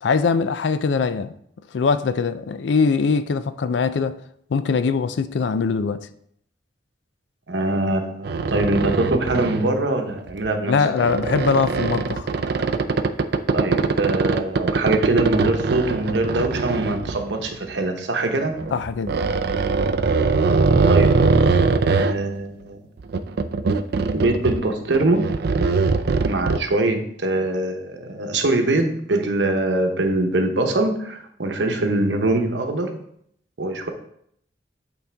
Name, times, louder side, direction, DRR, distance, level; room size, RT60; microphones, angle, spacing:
voice 1, 0.0-1.3 1.7-4.2 4.5-6.0 10.7-12.3 18.7-19.2, left 5 dB, 80° left, 0.4 m, -22 dB
voice 2, 7.5-10.9 13.5-18.6 20.9-22.9 24.1-25.3 26.2-33.0 33.6-33.9, right 2 dB, 75° right, 0.9 m, -23 dB
sound 1, 8.2-9.7 10.2-10.5 11.0-17.7 18.5-22.1 23.0-24.7 24.9-26.6, right 4 dB, 60° right, 0.4 m, -21 dB
8.3 x 4.0 x 3.4 m
head